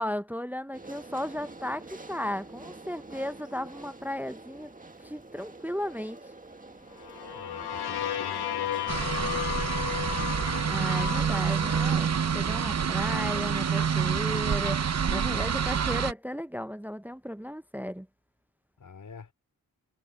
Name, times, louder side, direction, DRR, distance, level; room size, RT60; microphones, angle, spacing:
voice 1, 0.0-4.7 5.0-6.2 10.7-14.8 15.1-18.1, left 1 dB, 5° right, 0.6 m, -35 dB
sound 1, 0.7-12.2, right 2 dB, 20° right, 1.9 m, -46 dB
sound 2, 7.0-12.8, left 10 dB, 85° left, 1.4 m, -34 dB
voice 2, 7.3-9.7 18.8-19.3, left 5 dB, 55° left, 4.8 m, -45 dB
sound 3, 8.9-16.1, right 7 dB, 45° right, 0.9 m, -27 dB
cardioid pair, 65°, 37 cm